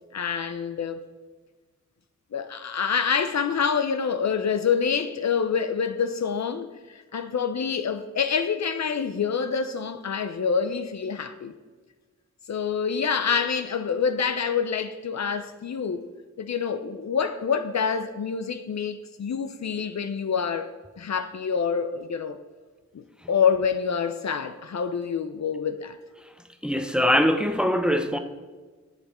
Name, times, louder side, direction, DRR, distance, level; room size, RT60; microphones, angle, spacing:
voice 1, 0.1-1.0 2.3-11.6 12.5-16.1 16.4-22.4 22.9-26.0, left 6 dB, 60° left, 0.6 m, -27 dB
voice 2, 26.6-28.2, equal, 5° right, 0.8 m, -22 dB
11.5 x 7.1 x 4.3 m
cardioid pair, 55°, 31 cm